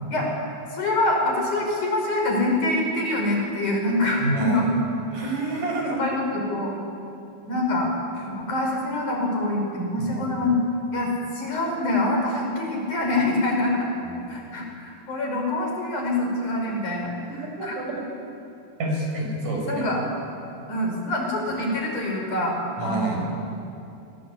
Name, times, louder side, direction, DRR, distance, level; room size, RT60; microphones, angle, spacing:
voice 1, 0.7-4.7 5.9-6.8 7.5-7.9 8.3-10.6 10.9-13.9 14.3-17.1 17.6-17.8 19.6-20.0 20.7-23.2, left 2 dB, 70° left, 1 dB, 6.7 m, -25 dB
voice 2, 4.2-4.6 5.1-6.0 10.0-10.4 14.0-14.2 17.6-18.0 18.8-19.9 22.8-23.3, right 2 dB, 80° right, 0 dB, 7.5 m, -28 dB
26.5 x 24.5 x 8.6 m, 2.6 s
omnidirectional pair, 3.7 m